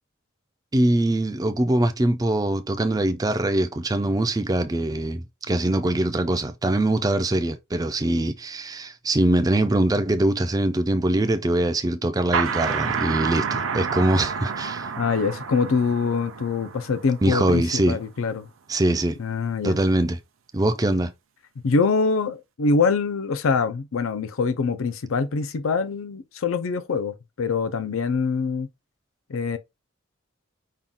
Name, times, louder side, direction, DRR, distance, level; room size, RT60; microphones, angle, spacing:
voice 1, 0.7-14.9 17.2-18.0 18.7-19.2 19.6-20.2 20.5-21.1, right 1 dB, 15° right, 0.4 m, -23 dB
sound 1, 12.3-17.7, right 6 dB, 70° right, 0.6 m, -29 dB
voice 2, 15.0-18.5 19.2-19.8 21.6-28.7 29.3-29.6, left 4 dB, 70° left, 0.5 m, -24 dB
5.6 x 2.3 x 3.6 m
head